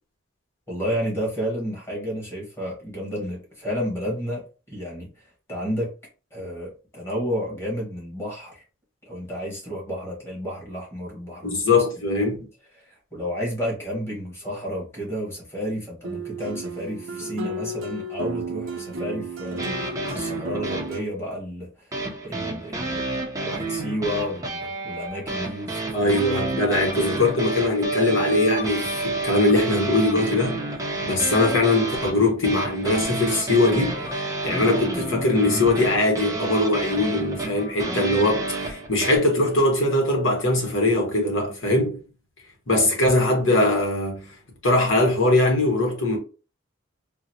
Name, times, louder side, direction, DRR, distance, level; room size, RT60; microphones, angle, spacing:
voice 1, 0.7-5.9 6.3-8.6 9.0-11.8 12.7-23.1 23.4-26.2, equal, 15° left, 1.2 m, -31 dB
voice 2, 11.4-12.4 25.9-30.6 31.0-34.0 34.4-42.0 42.7-44.3 44.6-46.2, left 2 dB, 70° left, 1.0 m, -21 dB
sound 1, 16.0-21.0, right 2 dB, 85° right, 0.6 m, -33 dB
sound 2, 19.6-21.0 21.9-39.2, right 2 dB, 15° right, 0.5 m, -30 dB
3.8 x 2.0 x 2.7 m
head